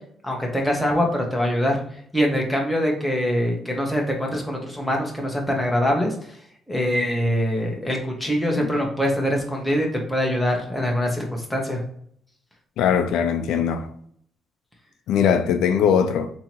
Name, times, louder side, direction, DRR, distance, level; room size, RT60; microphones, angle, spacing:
voice 1, 0.2-1.8 2.1-6.1 6.7-11.8, equal, 5° left, 1.2 m, -23 dB
voice 2, 12.8-13.9 15.1-16.3, left 7 dB, 85° left, 0.5 m, -20 dB
3.6 x 3.0 x 4.4 m
cardioid pair, 90°, 0 cm